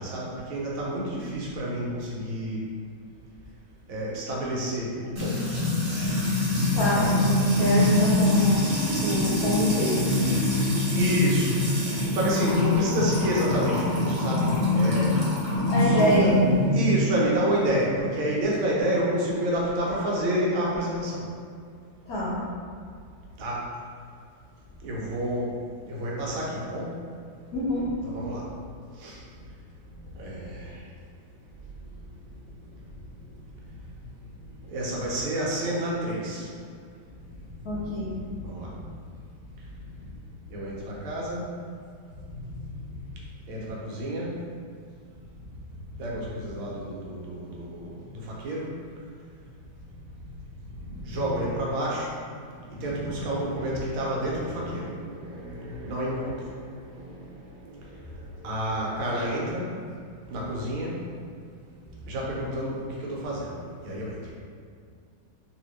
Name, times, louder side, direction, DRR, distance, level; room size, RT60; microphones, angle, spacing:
voice 1, 0.0-2.6 3.9-5.4 10.9-15.1 15.8-16.3 16.7-21.2 23.4-23.6 24.8-25.5 25.8-26.9 28.0-28.5 29.0-29.2 30.2-30.8 34.7-36.5 38.4-38.7 40.5-41.4 42.7-42.8 43.5-44.3 46.0-48.7 51.0-52.1 52.7-57.8 58.4-59.7 60.3-61.0 62.1-63.6 63.8-64.2, right 1 dB, 80° right, -4 dB, 1.5 m, -29 dB
Music / Water tap faucet / Trickle dribble, 5.2-16.9, left 2 dB, 60° right, 1.5 m, -24 dB
voice 2, 6.8-10.4 15.7-16.5 22.1-22.4 27.5-27.9 37.6-38.2 42.3-42.4 50.9-51.2 52.9-53.1, equal, 80° left, -8 dB, 0.8 m, -26 dB
3.4 x 2.8 x 3.0 m, 2.2 s
omnidirectional pair, 2.3 m